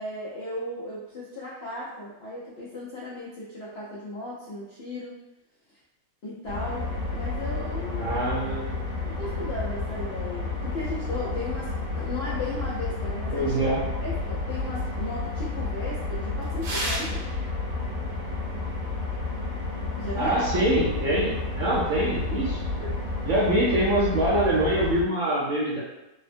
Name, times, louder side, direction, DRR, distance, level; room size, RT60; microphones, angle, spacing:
voice 1, 0.0-5.1 6.2-8.3 9.1-13.5 14.0-17.2 20.0-20.4, left 2 dB, 85° left, -7 dB, 0.5 m, -36 dB
sound 1, 6.5-25.0, left 3 dB, 90° right, 1.5 m, -31 dB
voice 2, 8.0-8.8 13.3-13.8 20.2-22.9 23.2-25.8, right 1 dB, 65° right, -8 dB, 0.8 m, -24 dB
3.5 x 2.1 x 2.6 m, 0.95 s
omnidirectional pair, 2.0 m